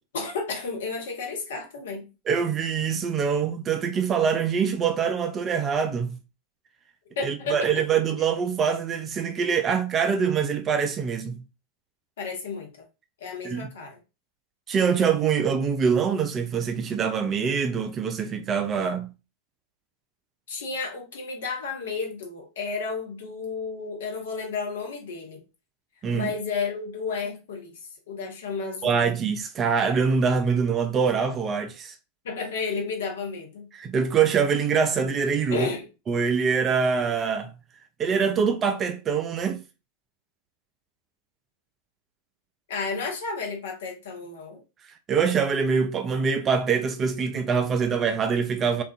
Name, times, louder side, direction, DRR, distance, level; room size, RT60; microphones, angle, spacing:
voice 1, 0.1-2.1 7.2-7.8 12.2-12.7 13.2-14.0 20.5-25.4 26.1-29.1 32.2-33.7 35.5-35.9 42.7-44.6, left 4 dB, 60° left, 0.8 m, -32 dB
voice 2, 2.3-6.2 7.2-11.4 13.4-13.7 14.7-19.1 26.0-26.3 28.8-31.9 33.7-35.7 36.1-37.5 38.0-39.6 45.1-48.8, right 6 dB, 25° right, 0.3 m, -24 dB
2.6 x 2.4 x 2.3 m
figure-of-eight pair, 90°, 0 cm